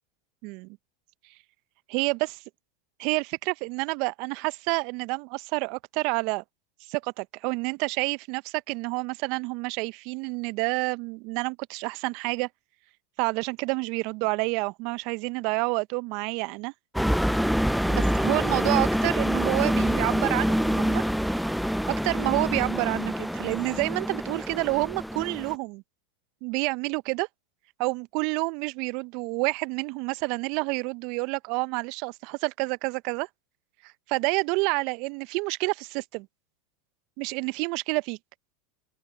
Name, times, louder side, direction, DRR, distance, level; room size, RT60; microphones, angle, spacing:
voice 1, 0.4-0.8 1.9-2.4 3.0-6.4 6.9-12.5 13.2-16.7 17.9-21.0 21.9-25.8 26.4-27.3 27.8-33.3 34.1-36.3 37.2-38.2, right 28 dB, 55° right, 0.8 m, -29 dB
sound 1, 16.9-25.5, equal, ahead, 0.5 m, -26 dB
hypercardioid pair, 90°, 0 cm